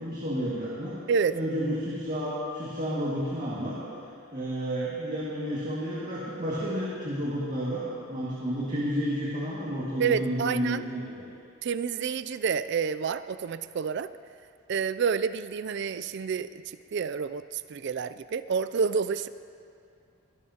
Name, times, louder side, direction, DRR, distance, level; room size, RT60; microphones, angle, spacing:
voice 1, 0.0-1.0 1.3-3.8 4.3-11.2, equal, 40° right, -8 dB, 2.0 m, -31 dB
voice 2, 10.0-10.8 11.6-14.1 14.7-19.3, right 6 dB, 55° right, 14 dB, 0.3 m, -29 dB
23.0 x 12.0 x 2.9 m, 2.4 s
head